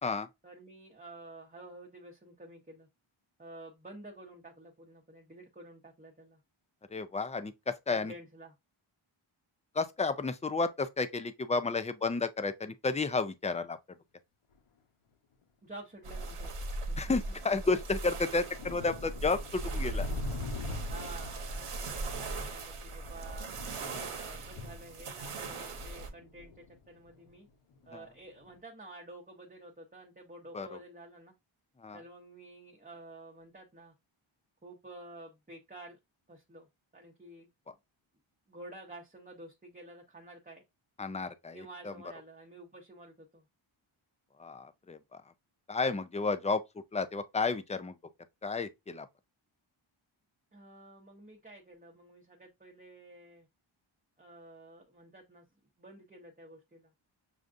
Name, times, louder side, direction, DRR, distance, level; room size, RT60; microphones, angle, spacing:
voice 1, 0.4-2.9 3.4-6.4 7.9-8.6 15.6-16.6 16.9-17.3 18.7-19.0 20.9-23.5 24.1-27.5 27.9-31.3 31.9-33.9 34.6-36.0 36.3-36.7 36.9-37.7 38.5-40.6 41.5-43.4 50.5-53.5 54.2-55.4 55.8-56.9, right 2 dB, 15° right, 0.7 m, -50 dB
voice 2, 6.9-8.1 9.7-13.8 17.0-20.1 23.8-24.1 27.9-28.0 30.5-30.8 31.8-32.0 41.0-41.9 44.4-45.2 45.7-46.6 46.9-48.0 48.4-49.1, left 3 dB, 15° left, 0.3 m, -32 dB
sound 1, 14.5-14.6 15.7-15.8 16.9-17.0 17.3-17.4 17.9-28.0 28.4-28.6, left 3 dB, 85° left, 0.8 m, -45 dB
sound 2, 16.0-26.1, right 2 dB, 85° right, 1.0 m, -39 dB
6.4 x 2.4 x 2.5 m
wide cardioid pair, 120°, 50 cm